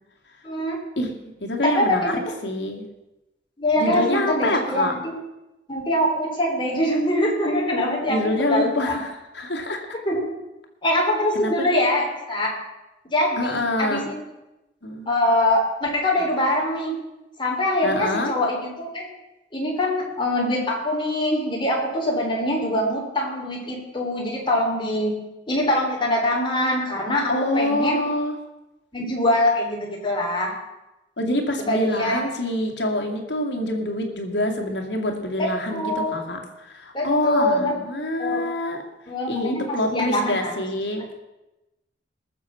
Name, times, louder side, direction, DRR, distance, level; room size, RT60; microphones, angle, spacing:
voice 1, 0.4-0.8 1.6-2.2 3.6-5.1 5.7-8.2 8.5-9.0 10.0-10.3 10.8-12.5 13.1-14.2 15.1-17.0 17.4-19.1 19.5-25.1 25.5-28.0 28.9-30.5 31.6-32.2 35.4-36.2 36.9-37.7 38.2-38.4 39.1-40.5, left 1 dB, 25° left, -1 dB, 3.5 m, -23 dB
voice 2, 1.4-2.8 3.8-4.9 8.1-9.9 11.3-11.5 13.4-14.1 14.8-15.2 17.8-18.3 27.3-28.3 31.2-38.8 39.3-41.0, left 1 dB, 75° left, 2 dB, 2.3 m, -26 dB
20.0 x 7.1 x 5.8 m, 0.99 s
head